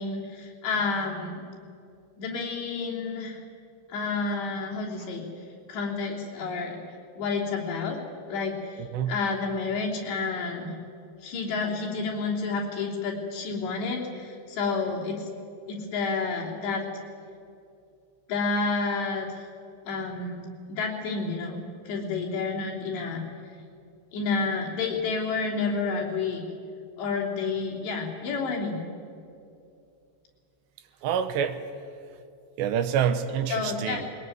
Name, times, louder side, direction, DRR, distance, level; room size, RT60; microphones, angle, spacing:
voice 1, 0.0-1.4 2.2-3.4 3.9-5.3 5.7-6.8 7.2-8.0 8.3-8.8 9.1-10.7 11.2-15.3 15.7-16.8 18.3-19.3 19.9-23.2 24.1-26.4 27.0-28.8 33.5-34.2, left 4 dB, 70° left, -1 dB, 5.4 m, -30 dB
voice 2, 8.8-9.2 31.0-31.6 32.6-34.1, right 8 dB, 80° right, 10 dB, 3.2 m, -27 dB
22.0 x 19.5 x 9.5 m, 2.6 s
omnidirectional pair, 5.2 m